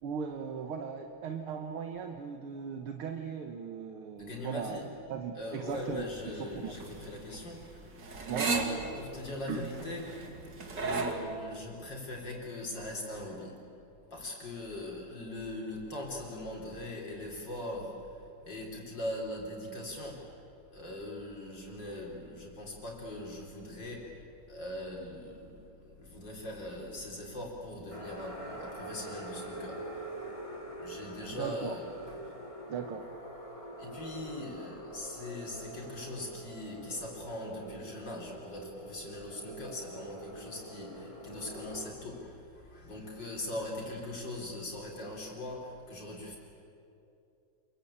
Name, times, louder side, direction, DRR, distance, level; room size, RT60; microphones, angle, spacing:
voice 1, 0.0-6.1 6.4-6.8 8.3-8.5 9.5-9.7 31.4-31.8 32.7-33.1, right 7 dB, 75° right, 5 dB, 2.1 m, -38 dB
voice 2, 4.2-4.8 5.4-7.9 8.3-13.7 14.1-20.4 20.7-32.4 33.8-46.4, left 1 dB, 50° left, -1 dB, 4.6 m, -41 dB
sound 1, 5.7-11.1, right 4 dB, 50° right, 2.8 m, -35 dB
sound 2, 27.9-41.9, right 1 dB, 15° left, 2.2 m, -45 dB
28.5 x 22.5 x 8.8 m, 2.7 s
omnidirectional pair, 2.4 m